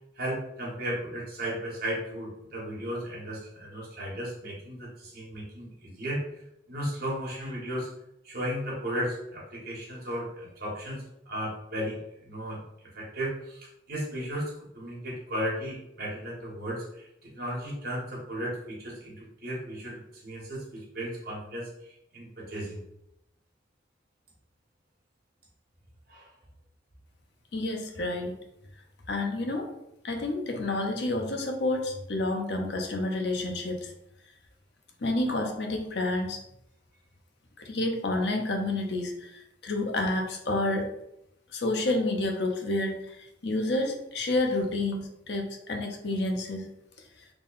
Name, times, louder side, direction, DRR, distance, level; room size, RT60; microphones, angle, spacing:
voice 1, 0.1-6.4 6.7-7.9 8.2-22.8 26.1-26.3, equal, 50° right, -4 dB, 1.3 m, -35 dB
voice 2, 27.5-28.3 29.1-29.7 30.0-33.9 35.0-36.4 37.6-40.9 41.5-43.0 43.4-46.7, left 2 dB, 60° left, 3 dB, 0.6 m, -29 dB
3.5 x 2.2 x 3.9 m, 0.81 s
head